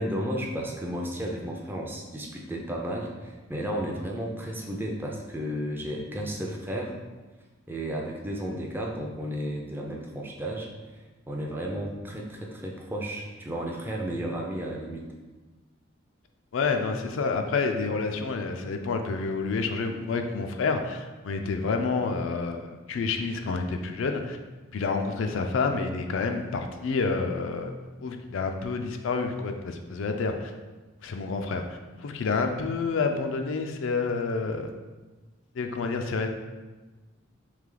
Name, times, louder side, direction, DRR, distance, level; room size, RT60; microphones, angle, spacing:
voice 1, 0.0-6.9 7.7-15.1, equal, 10° right, -1 dB, 0.4 m, -33 dB
voice 2, 16.5-24.4 24.7-27.7 28.0-30.5 31.0-34.6 35.6-36.3, left 4 dB, 75° left, 5 dB, 0.4 m, -29 dB
3.3 x 3.1 x 3.7 m, 1.2 s
head